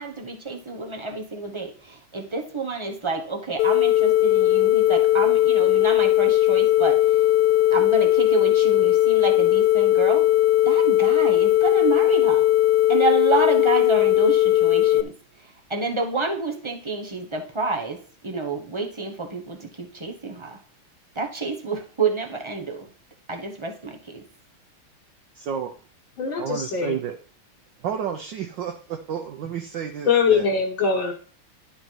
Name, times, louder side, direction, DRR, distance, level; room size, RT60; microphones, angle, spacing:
voice 1, 0.0-7.0 7.7-10.2 10.7-12.4 12.9-15.1 15.7-20.6 21.2-22.8 23.3-24.2, right 4 dB, 35° right, 2 dB, 0.4 m, -29 dB
sound 1, 3.6-15.0, left 14 dB, 80° left, 1.5 m, -18 dB
voice 2, 25.3-25.7 26.4-27.2 27.8-30.5, right 8 dB, 65° right, 3 dB, 1.4 m, -31 dB
voice 3, 26.2-27.0 30.1-31.1, left 5 dB, 65° left, -3 dB, 2.0 m, -22 dB
11.0 x 5.4 x 4.6 m, 0.43 s
omnidirectional pair, 2.4 m